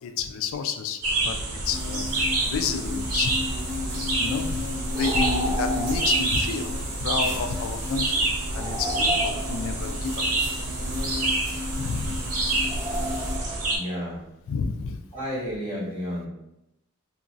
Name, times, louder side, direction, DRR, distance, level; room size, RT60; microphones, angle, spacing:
voice 1, 0.0-3.3 4.2-10.3 11.8-12.2 14.5-15.0, left 5 dB, 65° left, 8 dB, 0.3 m, -31 dB
sound 1, 1.0-13.8, right 2 dB, 85° right, 0.7 m, -28 dB
sound 2, 1.7-13.4, left 2 dB, 50° right, 0.8 m, -35 dB
sound 3, 4.9-6.3 8.5-10.0 12.6-13.8, right 1 dB, 15° right, 0.4 m, -31 dB
voice 2, 13.7-14.2 15.1-16.3, equal, 25° left, -13 dB, 1.4 m, -31 dB
2.9 x 2.4 x 2.6 m, 0.87 s
head